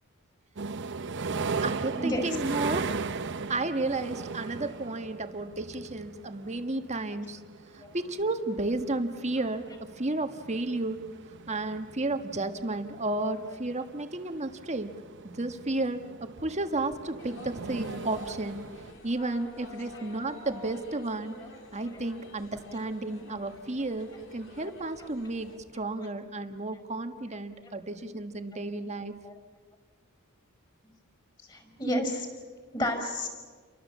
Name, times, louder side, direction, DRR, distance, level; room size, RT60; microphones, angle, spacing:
sound 1, 0.6-18.9, right 4 dB, 55° right, 0.9 m, -38 dB
voice 1, 1.4-3.0 3.5-7.4 7.7-11.0 11.5-15.0 15.2-18.6 19.0-21.4 21.7-29.1, right 2 dB, 30° right, 7 dB, 1.5 m, -32 dB
voice 2, 2.0-2.3 20.0-20.1 21.4-21.5 22.8-22.9 24.6-24.7 27.7-27.8 29.2-29.3 31.5-32.3 32.7-33.3, equal, 20° left, 6 dB, 5.4 m, -31 dB
sound 2, 17.2-25.6, left 2 dB, 60° left, 3.5 m, -48 dB
30.0 x 24.0 x 7.4 m, 1.5 s
head